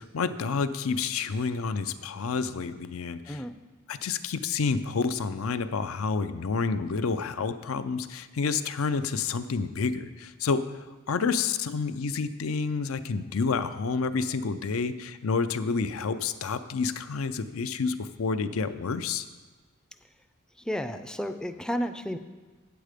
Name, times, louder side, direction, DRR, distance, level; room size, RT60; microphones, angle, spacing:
voice 1, 0.0-3.4 3.9-10.7 11.1-19.3, left 4 dB, 80° left, 12 dB, 0.5 m, -29 dB
voice 2, 20.6-22.2, equal, 5° left, 9 dB, 0.4 m, -32 dB
9.0 x 7.9 x 5.0 m, 1.3 s
head